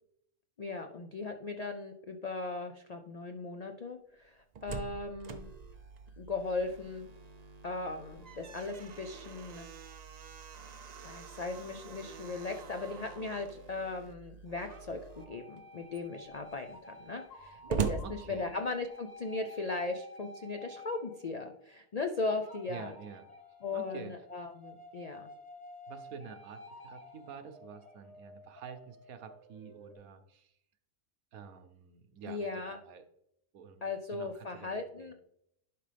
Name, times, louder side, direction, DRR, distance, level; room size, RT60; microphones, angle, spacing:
voice 1, 0.6-5.5 6.2-7.1 7.6-9.7 11.0-22.9 23.6-25.3 32.2-32.8 33.8-35.1, left 3 dB, 75° left, 5 dB, 0.3 m, -38 dB
Slam, 4.3-7.1 7.4-7.5 7.9-13.6 14.5-15.0 15.6-15.7 15.9-19.0, right 5 dB, 60° right, 0.4 m, -42 dB
sound 1, 5.2-15.2, right 4 dB, 35° right, 0.8 m, -54 dB
sound 2, 12.6-14.2 14.7-21.8 22.4-29.9, left 1 dB, 30° left, 1.4 m, -52 dB
voice 2, 18.0-18.5 22.7-23.3 23.7-24.1 25.9-30.5 31.3-33.0 33.5-35.1, right 6 dB, 80° right, 8 dB, 1.3 m, -48 dB
11.0 x 5.1 x 3.4 m, 0.76 s
omnidirectional pair, 1.5 m